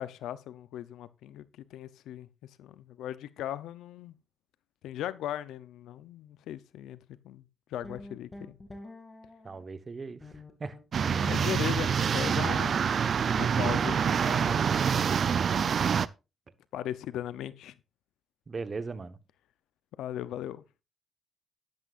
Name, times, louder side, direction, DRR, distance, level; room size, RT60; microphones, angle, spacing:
voice 1, 0.0-2.3 2.6-4.1 4.8-7.0 7.2-7.4 7.7-8.6 11.2-12.8 13.3-14.6 16.7-17.7 20.0-20.6, left 11 dB, 85° left, 0.6 m, -38 dB
sound 1, 7.8-9.6 10.2-11.8, left 2 dB, 25° left, 2.5 m, -47 dB
voice 2, 9.4-10.2 10.6-10.8 18.5-19.2, right 4 dB, 40° right, 1.2 m, -38 dB
sound 2, 10.9-16.1, right 7 dB, 55° right, 0.5 m, -26 dB
12.0 x 11.0 x 2.5 m
cardioid pair, 75°, 0 cm